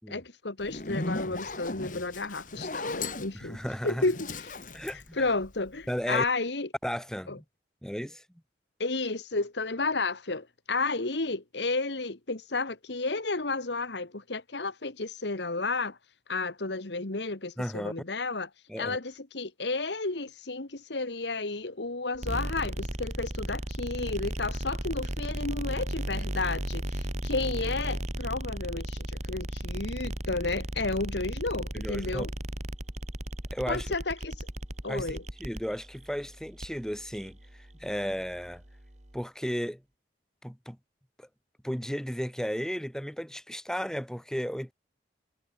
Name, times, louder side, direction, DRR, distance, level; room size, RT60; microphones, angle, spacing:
voice 1, 0.1-3.6 3.8-4.5 5.2-6.7 7.3-7.4 8.8-16.0 16.3-18.5 18.8-32.3 33.7-34.5 34.8-35.2, left 3 dB, 75° left, 1.7 m, -32 dB
Zipper (clothing), 0.6-5.9, left 2 dB, 45° left, 2.4 m, -37 dB
voice 2, 3.3-4.0 4.7-5.2 5.9-6.2 6.8-7.4 7.8-8.2 17.6-17.9 18.7-19.0 31.7-32.2 33.5-33.9 34.9-38.6 39.1-39.8 40.4-40.8 41.2-41.3 41.6-44.7, equal, 5° left, 7.4 m, -34 dB
sound 1, 22.1-39.2, right 1 dB, 40° right, 2.6 m, -36 dB
head